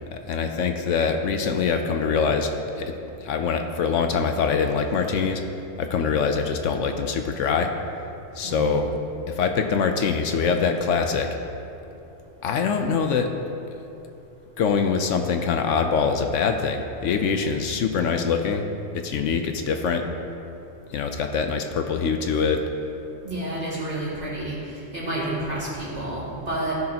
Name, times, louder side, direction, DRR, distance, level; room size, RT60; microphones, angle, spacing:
voice 1, 0.1-2.5 2.8-2.9 3.2-5.4 5.8-7.7 8.3-8.9 9.3-11.3 12.4-13.3 14.6-18.7 18.9-20.0 20.9-22.6, left 5 dB, 75° left, 5 dB, 0.9 m, -24 dB
voice 2, 8.4-8.8 23.2-24.6 24.9-26.7, right 1 dB, 50° right, -8 dB, 2.6 m, -29 dB
15.5 x 6.4 x 2.9 m, 2.8 s
omnidirectional pair, 1.3 m